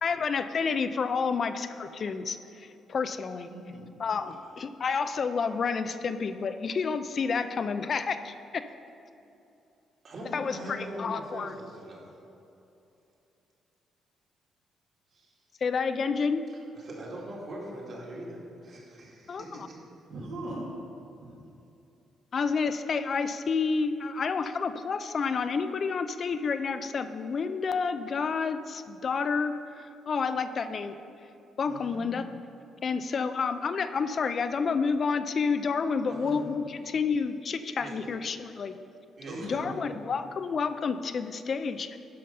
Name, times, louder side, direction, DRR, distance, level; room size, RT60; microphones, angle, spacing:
voice 1, 0.0-3.5 4.0-8.7 10.3-11.5 15.6-16.5 19.3-19.7 22.3-30.9 31.6-32.3 32.8-38.7 39.4-42.0, left 5 dB, 50° left, 10 dB, 0.4 m, -29 dB
voice 2, 3.5-3.8 20.1-20.8 21.2-21.3 31.7-32.1 36.2-36.5 39.2-39.8, right 1 dB, 80° right, -4 dB, 2.1 m, -39 dB
voice 3, 10.0-12.2 15.1-15.3 16.5-19.8 36.1-36.3 37.8-38.0 39.2-39.5, right 1 dB, 55° right, -3 dB, 2.2 m, -42 dB
11.5 x 5.1 x 5.4 m, 2.8 s
cardioid pair, 90°, 0 cm